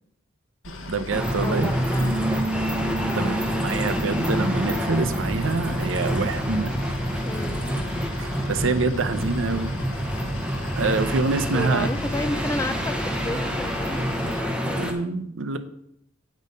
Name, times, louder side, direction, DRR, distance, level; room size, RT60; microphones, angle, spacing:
Boat Water vehicle, 0.6-14.4, left 1 dB, 85° left, 1.0 m, -38 dB
voice 1, 0.9-1.7 3.1-6.7 8.2-9.7 10.7-11.9 14.7-15.6, right 3 dB, 85° right, 10 dB, 0.7 m, -26 dB
sound 1, 1.1-14.9, equal, 5° right, 0.8 m, -27 dB
voice 2, 1.4-2.2 3.0-3.4 7.2-7.6 11.5-15.1, left 2 dB, 15° left, 11 dB, 0.4 m, -32 dB
Bass guitar, 2.0-6.3 6.6-8.2, right 2 dB, 40° right, 1.0 m, -33 dB
8.4 x 5.2 x 5.4 m, 0.74 s
head